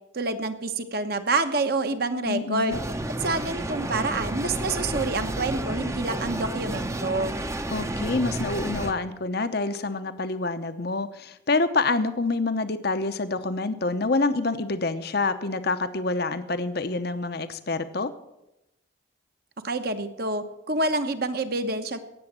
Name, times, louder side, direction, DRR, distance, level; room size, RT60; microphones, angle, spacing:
voice 1, 0.1-2.8 3.2-7.3 19.6-22.0, right 2 dB, 50° right, 8 dB, 1.1 m, -27 dB
voice 2, 2.2-2.8 7.7-18.1, left 3 dB, 50° left, 11 dB, 0.8 m, -27 dB
sound 1, 2.7-8.9, right 1 dB, 15° right, 0.7 m, -31 dB
18.0 x 7.2 x 8.6 m, 0.89 s
head